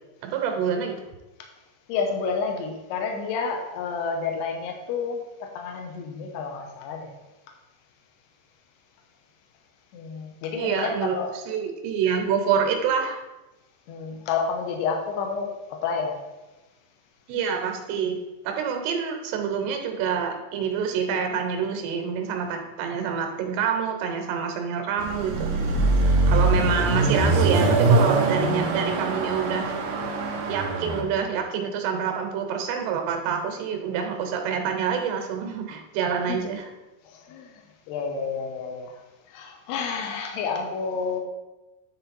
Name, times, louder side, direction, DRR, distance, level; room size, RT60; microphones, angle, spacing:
voice 1, 0.2-1.0 10.6-13.2 17.3-18.2 18.4-25.5 26.3-29.7 30.5-36.7, right 7 dB, 90° right, 4 dB, 3.1 m, -27 dB
voice 2, 1.9-7.1 9.9-11.3 13.9-15.5 15.8-16.2 36.3-36.4 37.1-37.6 37.9-38.9 39.3-41.2, left 5 dB, 80° left, 2 dB, 2.9 m, -30 dB
Car passing by / Accelerating revving vroom, 25.0-31.0, right 3 dB, 70° right, 2.1 m, -22 dB
9.8 x 4.1 x 4.1 m, 1.1 s
omnidirectional pair, 4.7 m